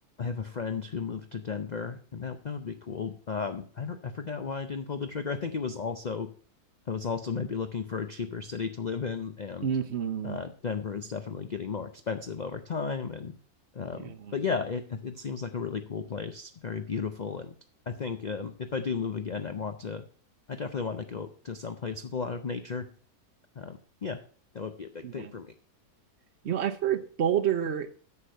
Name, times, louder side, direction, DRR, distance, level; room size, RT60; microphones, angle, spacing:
voice 1, 0.2-6.3 6.9-9.7 10.2-13.3 13.7-17.5 17.9-20.1 20.5-22.9 23.6-24.2 24.5-25.5, left 5 dB, 75° left, 8 dB, 0.4 m, -34 dB
voice 2, 9.6-10.4 14.0-14.3 25.0-25.3 26.4-28.0, right 9 dB, 55° right, 9 dB, 0.9 m, -29 dB
9.7 x 6.7 x 5.4 m, 0.43 s
omnidirectional pair, 1.7 m